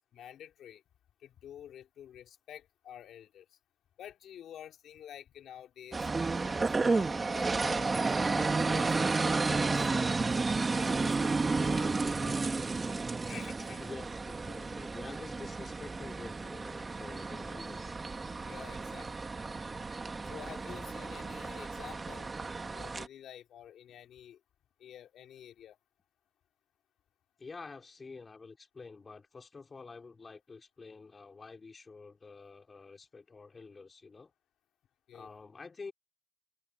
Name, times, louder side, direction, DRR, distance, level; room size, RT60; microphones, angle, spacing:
voice 1, 0.1-0.8 1.2-3.5 4.0-6.1 6.7-8.0 8.2-10.2 10.7-12.4 13.3-13.9 18.4-19.1 20.2-22.3 22.6-24.4 24.8-25.8 35.1-35.3, left 10 dB, 70° left, 3.7 m, -49 dB
sound 1, 5.9-23.1, right 3 dB, 30° right, 2.1 m, -32 dB
voice 2, 13.8-17.9 27.4-34.3 35.1-35.9, left 4 dB, 30° left, 3.2 m, -48 dB
open air
cardioid pair, 90°, 0 cm